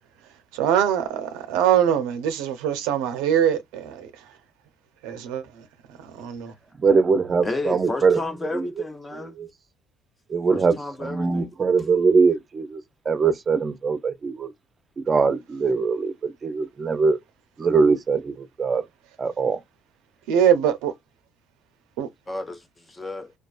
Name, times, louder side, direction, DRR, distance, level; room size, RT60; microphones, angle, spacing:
voice 1, 0.5-4.1 5.0-5.7 6.0-6.5 20.3-20.9 22.0-22.1, right 9 dB, 85° right, 0.5 m, -23 dB
voice 2, 6.8-8.2 8.5-8.7 9.1-9.5 10.3-12.8 13.1-14.5 15.0-17.2 17.6-18.8 19.2-19.6, right 4 dB, 30° right, 0.5 m, -22 dB
voice 3, 7.4-9.4 10.5-11.5 22.3-23.3, left 2 dB, 20° left, 0.5 m, -32 dB
2.3 x 2.3 x 2.3 m
cardioid pair, 95°, 0 cm